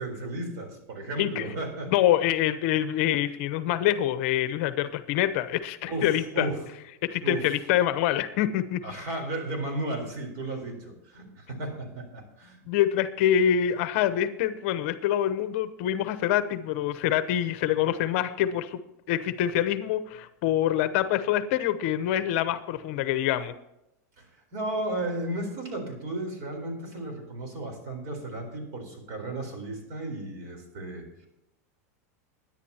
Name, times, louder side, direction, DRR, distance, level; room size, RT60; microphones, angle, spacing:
voice 1, 0.0-1.9 5.8-6.7 7.2-7.5 8.8-12.6 24.2-31.3, right 1 dB, 45° right, 4 dB, 4.0 m, -34 dB
voice 2, 1.9-6.5 7.0-8.8 12.7-18.8 19.1-23.5, left 11 dB, 50° left, 11 dB, 0.8 m, -25 dB
22.0 x 10.5 x 2.9 m, 0.88 s
supercardioid pair, 155°, 9 cm